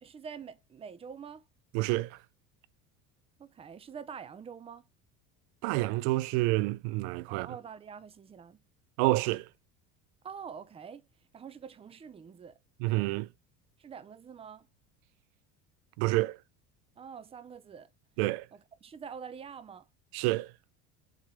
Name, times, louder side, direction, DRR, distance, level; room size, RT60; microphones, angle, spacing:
voice 1, 0.0-1.4 3.4-4.8 7.3-8.6 10.2-11.1 11.3-12.6 13.8-14.7 17.0-17.9 18.5-19.9, right 7 dB, 15° right, 0.6 m, -45 dB
voice 2, 1.7-2.2 5.6-7.5 9.0-9.5 12.8-13.3 16.0-16.4 18.2-18.5 20.1-20.5, right 20 dB, 75° right, 0.5 m, -28 dB
7.4 x 3.4 x 4.6 m
cardioid pair, 135°, 34 cm